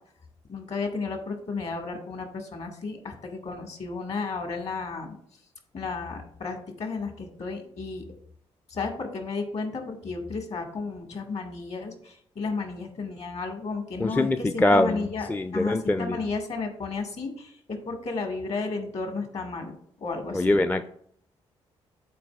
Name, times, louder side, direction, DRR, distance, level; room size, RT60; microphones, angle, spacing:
voice 1, 0.5-5.1 5.7-8.1 8.7-20.6, left 4 dB, 50° left, 3 dB, 1.8 m, -33 dB
voice 2, 14.0-16.2 20.3-20.9, left 2 dB, 10° left, 10 dB, 0.4 m, -23 dB
12.0 x 4.3 x 2.4 m, 0.67 s
figure-of-eight pair, 40°, 14 cm